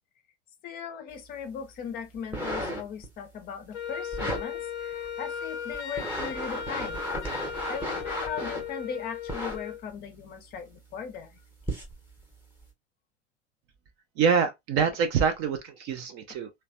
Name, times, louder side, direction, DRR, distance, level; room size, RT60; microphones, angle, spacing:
voice 1, 0.6-7.0 7.3-11.4, left 7 dB, 25° left, 0.6 m, -38 dB
sound 1, 2.2-3.1 4.1-4.4 5.0-5.1 5.7-8.7 9.3-9.6 10.5-10.6 11.6-12.0 12.6-12.7, equal, 5° right, 0.9 m, -33 dB
Wind instrument woodwind instrument, 3.7-9.8, left 7 dB, 75° left, 0.5 m, -37 dB
voice 2, 14.2-16.5, right 6 dB, 30° right, 0.4 m, -25 dB
3.0 x 2.2 x 2.5 m
figure-of-eight pair, 85°, 34 cm